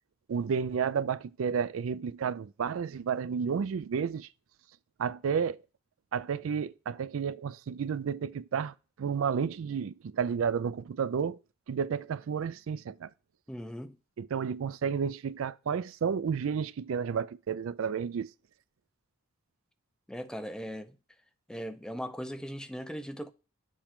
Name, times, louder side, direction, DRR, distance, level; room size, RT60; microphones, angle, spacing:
voice 1, 0.3-4.3 5.0-5.6 6.1-11.4 11.7-13.1 14.2-18.3, right 6 dB, 70° right, 0.4 m, -31 dB
voice 2, 13.5-14.0 20.1-21.0 21.5-23.3, equal, 5° left, 0.4 m, -39 dB
7.3 x 4.3 x 3.6 m
head